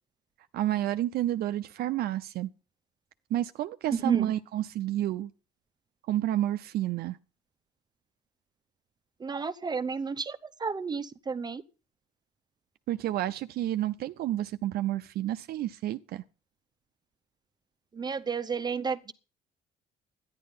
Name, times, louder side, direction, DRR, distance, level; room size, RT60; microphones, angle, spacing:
voice 1, 0.5-2.5 3.3-5.3 6.1-7.2 12.9-16.2, right 13 dB, 65° right, 0.6 m, -30 dB
voice 2, 9.2-11.6 17.9-19.1, right 5 dB, 25° right, 0.8 m, -31 dB
12.0 x 10.5 x 5.5 m
cardioid pair, 110°, 17 cm